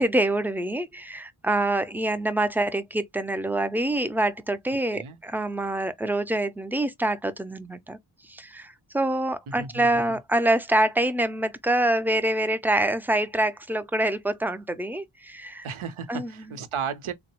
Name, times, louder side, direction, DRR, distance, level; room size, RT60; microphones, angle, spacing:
voice 1, 0.0-8.0 8.3-15.7 16.1-16.3, right 1 dB, 5° right, 0.4 m, -26 dB
voice 2, 9.5-10.2 15.6-17.1, right 6 dB, 90° right, 0.7 m, -34 dB
3.7 x 2.0 x 2.9 m
wide cardioid pair, 80°, 48 cm